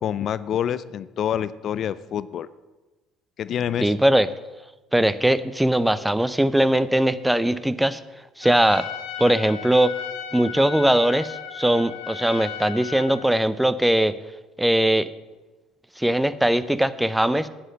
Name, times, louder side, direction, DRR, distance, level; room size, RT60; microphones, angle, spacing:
voice 1, 0.0-2.5 3.4-3.9, left 9 dB, 55° left, 16 dB, 0.4 m, -27 dB
voice 2, 3.8-4.3 4.9-8.0 8.4-8.9 9.2-9.9 10.3-14.1 14.6-15.1 16.0-17.5, right 1 dB, 5° right, 15 dB, 0.6 m, -20 dB
Trumpet, 8.4-13.3, left 8 dB, 80° left, 1.6 m, -36 dB
9.8 x 7.9 x 6.3 m, 1.1 s
hypercardioid pair, 60°, 0 cm